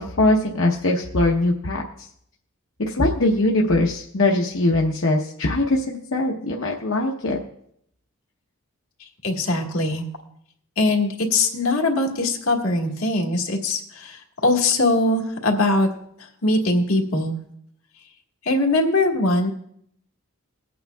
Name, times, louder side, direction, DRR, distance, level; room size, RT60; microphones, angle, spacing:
voice 1, 0.0-1.8 2.9-7.4, left 2 dB, 65° left, -1 dB, 0.9 m, -21 dB
voice 2, 9.2-10.0 10.8-15.9 16.2-17.4 18.4-19.5, left 2 dB, 80° left, 1 dB, 1.6 m, -21 dB
21.5 x 8.6 x 2.3 m, 0.70 s
head